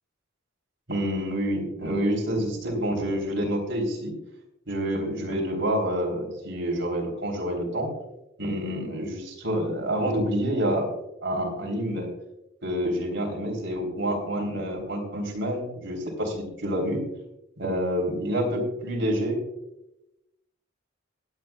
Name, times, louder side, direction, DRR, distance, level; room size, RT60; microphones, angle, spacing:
voice 1, 0.9-4.1 4.7-7.9 8.4-10.9 11.2-12.1 12.6-17.0 17.6-19.4, equal, 65° right, 0 dB, 3.4 m, -28 dB
25.0 x 9.0 x 2.3 m, 0.89 s
head